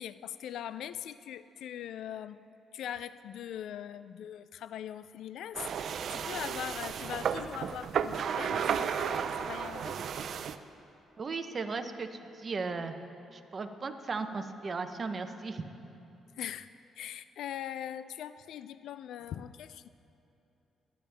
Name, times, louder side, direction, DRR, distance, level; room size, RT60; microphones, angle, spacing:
voice 1, 0.0-2.4 2.7-10.0 16.3-16.7 17.0-19.9, left 10 dB, 75° left, 14 dB, 0.3 m, -41 dB
sound 1, 5.5-10.6, right 7 dB, 60° right, 0.5 m, -33 dB
voice 2, 11.2-13.0 13.3-15.6, right 4 dB, 40° right, 7 dB, 0.9 m, -36 dB
20.5 x 10.5 x 3.5 m, 2.9 s
cardioid pair, 90°, 0 cm